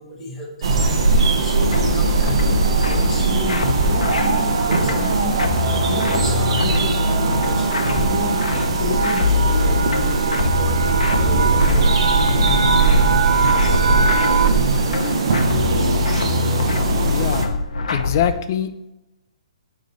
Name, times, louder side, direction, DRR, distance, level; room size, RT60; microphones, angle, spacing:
voice 1, 0.0-2.4 2.8-5.4 5.9-8.5 8.8-13.3 13.6-15.9, left 2 dB, 10° left, -5 dB, 1.5 m, -32 dB
sound 1, 0.6-17.5, right 4 dB, 50° right, 0.9 m, -20 dB
sound 2, 1.7-18.3, left 5 dB, 80° left, 0.7 m, -24 dB
sound 3, 2.6-14.7, right 5 dB, 70° right, 0.5 m, -26 dB
voice 2, 17.1-18.7, left 10 dB, 30° left, 9 dB, 0.4 m, -24 dB
6.5 x 3.2 x 5.3 m, 0.89 s
hypercardioid pair, 170°, 4 cm